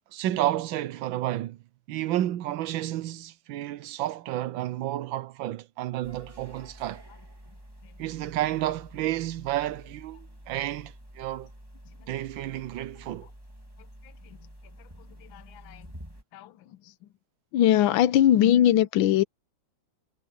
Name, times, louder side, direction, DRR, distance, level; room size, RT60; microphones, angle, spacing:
voice 1, 0.1-1.6 1.9-7.0 8.0-11.5 12.1-13.3, right 14 dB, 75° right, 1.5 m, -31 dB
sound 1, 6.0-16.2, equal, 10° right, 3.1 m, -49 dB
voice 2, 15.2-15.9 16.3-16.5 17.5-19.2, left 11 dB, 80° left, 1.6 m, -21 dB
omnidirectional pair, 2.2 m